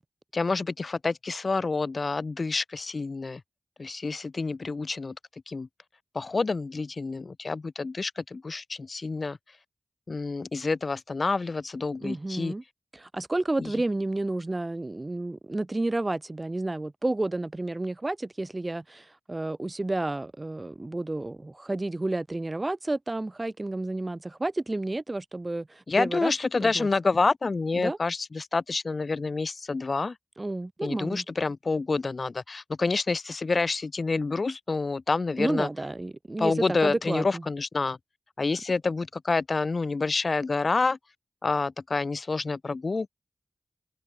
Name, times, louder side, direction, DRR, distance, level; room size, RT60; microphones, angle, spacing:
voice 1, 0.3-3.4 3.8-5.1 5.5-5.7 6.1-9.4 10.1-12.5 13.6-13.7 25.9-30.1 30.8-35.7 36.4-38.0 38.4-41.0 41.4-43.1, left 3 dB, 55° left, 1.7 m, -28 dB
voice 2, 12.0-12.6 12.9-26.3 26.6-26.9 27.8-28.0 30.4-31.2 35.4-37.4, right 2 dB, 30° right, 7.7 m, -31 dB
open air
cardioid pair, 50°, 0 cm